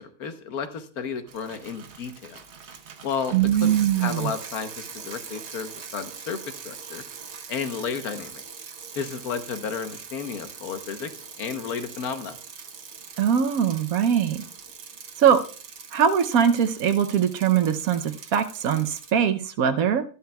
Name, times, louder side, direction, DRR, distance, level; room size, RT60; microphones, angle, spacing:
voice 1, 0.0-2.4 3.0-3.3 3.6-3.7 4.0-7.0 7.5-8.4 8.9-11.1 11.4-12.4, left 6 dB, 80° left, 8 dB, 1.5 m, -32 dB
Bicycle, 1.3-19.1, right 6 dB, 50° right, 1.1 m, -42 dB
voice 2, 3.3-4.3 13.2-14.4 15.2-15.4 15.9-20.0, right 8 dB, 70° right, 9 dB, 1.2 m, -21 dB
12.5 x 11.5 x 2.3 m, 0.39 s
omnidirectional pair, 1.6 m